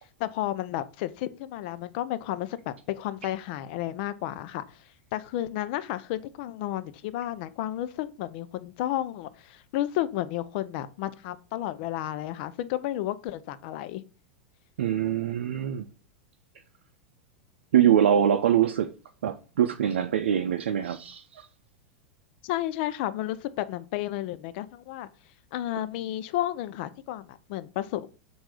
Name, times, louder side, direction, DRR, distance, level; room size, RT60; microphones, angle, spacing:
voice 1, 0.2-4.8 5.1-14.0 22.4-25.1 25.5-28.1, left 13 dB, 60° left, 0.6 m, -32 dB
voice 2, 14.8-15.8 17.7-18.9 19.2-21.5, right 10 dB, 80° right, 0.5 m, -23 dB
7.7 x 2.6 x 4.8 m
hypercardioid pair, 110°, 6 cm